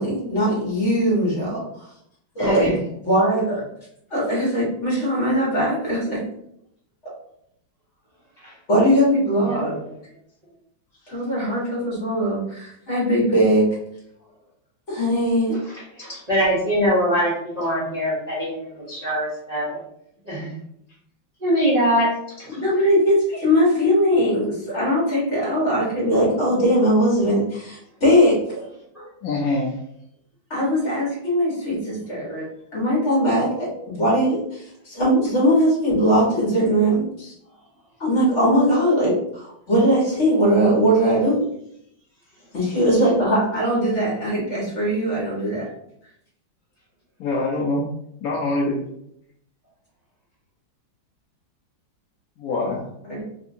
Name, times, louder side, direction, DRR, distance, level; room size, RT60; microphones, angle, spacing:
voice 1, 0.0-1.6 2.3-2.7 3.0-3.6 4.1-6.2 8.7-9.8 11.1-13.7 14.9-15.6 22.5-28.4 30.5-32.5 32.7-37.3 38.0-41.4 42.5-45.7, equal, 40° left, -6 dB, 1.5 m, -20 dB
voice 2, 2.4-2.8 8.4-8.5 9.4-9.8 15.7-19.8 20.2-20.5 21.4-22.1 22.4-22.6 28.9-29.1, equal, 30° right, -9 dB, 0.8 m, -23 dB
voice 3, 29.2-29.7 47.2-47.9 48.2-48.8 52.4-52.9, left 2 dB, 85° left, -3 dB, 0.8 m, -24 dB
3.4 x 2.7 x 2.6 m, 0.73 s
omnidirectional pair, 2.2 m